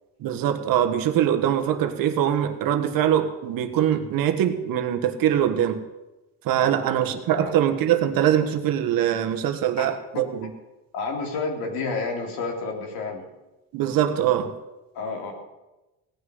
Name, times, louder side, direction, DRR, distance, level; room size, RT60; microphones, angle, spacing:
voice 1, 0.2-5.8 6.4-10.5 13.7-14.5, right 10 dB, 65° right, 7 dB, 1.6 m, -23 dB
voice 2, 6.6-7.5 9.8-9.9 10.1-10.2 10.9-13.3 14.9-15.3, left 4 dB, 80° left, 1 dB, 3.6 m, -30 dB
17.5 x 6.4 x 9.6 m, 1.0 s
cardioid pair, 130°, 36 cm